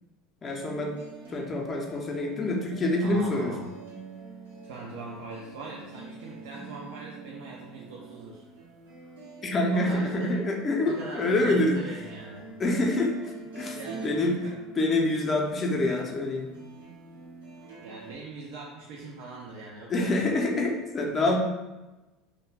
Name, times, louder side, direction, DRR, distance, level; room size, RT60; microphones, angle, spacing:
voice 1, 0.4-1.0 1.3-3.7 9.4-11.9 12.6-13.8 14.0-14.4 14.8-16.5 19.9-21.4, left 2 dB, 35° left, 1 dB, 0.5 m, -26 dB
sound 1, 0.5-18.1, right 3 dB, 90° right, 0.8 m, -45 dB
voice 2, 3.0-3.8 4.6-8.4 9.7-10.3 10.8-12.5 13.7-14.6 17.8-20.3, right 3 dB, 70° right, -3 dB, 0.4 m, -41 dB
2.3 x 2.1 x 3.2 m, 1.1 s
hypercardioid pair, 75°, 0 cm